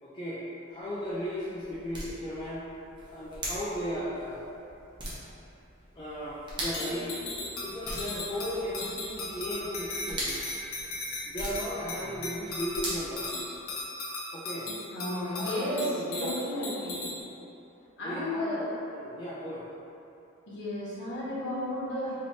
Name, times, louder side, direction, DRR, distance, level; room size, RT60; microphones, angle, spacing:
voice 1, 0.0-2.6 3.1-4.5 6.0-7.1 7.6-10.4 11.3-13.3 14.3-14.7 15.1-16.4 18.0-18.6 18.9-19.7, equal, 20° left, -9 dB, 0.3 m, -36 dB
sound 1, 0.7-13.9, right 1 dB, 20° right, 0.8 m, -42 dB
sound 2, 6.7-17.2, left 2 dB, 75° left, 0.7 m, -37 dB
voice 2, 14.9-17.1 18.0-18.7 20.5-22.2, left 1 dB, 55° left, -9 dB, 1.0 m, -33 dB
3.1 x 2.9 x 4.0 m, 2.9 s
head